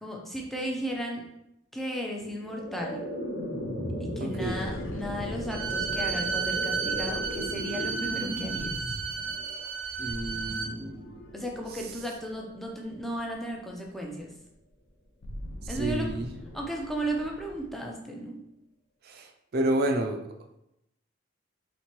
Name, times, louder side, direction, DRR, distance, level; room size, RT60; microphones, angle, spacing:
voice 1, 0.0-1.2 1.7-3.0 4.0-8.8 11.3-14.3 15.7-16.1 16.5-18.4, right 1 dB, ahead, -1 dB, 0.5 m, -35 dB
sound 1, 2.1-13.2, equal, 55° left, 1.3 m, -37 dB
voice 2, 4.2-4.6 10.0-11.0 11.7-11.9 15.6-16.3 19.0-20.2, right 1 dB, 50° right, 4 dB, 0.4 m, -30 dB
sound 2, 4.4-12.8 13.2-13.4 13.7-17.8, left 1 dB, 75° left, 0.6 m, -44 dB
Bowed string instrument, 5.5-10.7, right 6 dB, 90° right, 0.6 m, -32 dB
4.3 x 3.2 x 3.0 m, 0.84 s
head